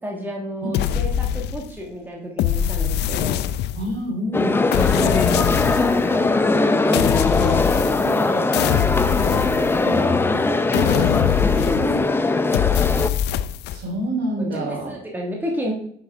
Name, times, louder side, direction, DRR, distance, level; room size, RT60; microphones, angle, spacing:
voice 1, 0.0-3.5 5.0-9.1 9.8-13.0 14.4-15.7, right 1 dB, 10° right, -1 dB, 1.4 m, -32 dB
sound 1, 0.7-1.9 2.4-4.0 4.7-6.0 6.9-8.2 8.5-10.1 10.7-12.1 12.5-13.8, left 11 dB, 65° left, 0.4 m, -23 dB
voice 2, 3.8-5.1 13.7-14.9, equal, 65° right, 0 dB, 3.2 m, -27 dB
sound 2, 4.3-13.1, left 3 dB, 10° left, 0.5 m, -20 dB
6.1 x 5.8 x 4.8 m, 0.65 s
cardioid pair, 125°, 19 cm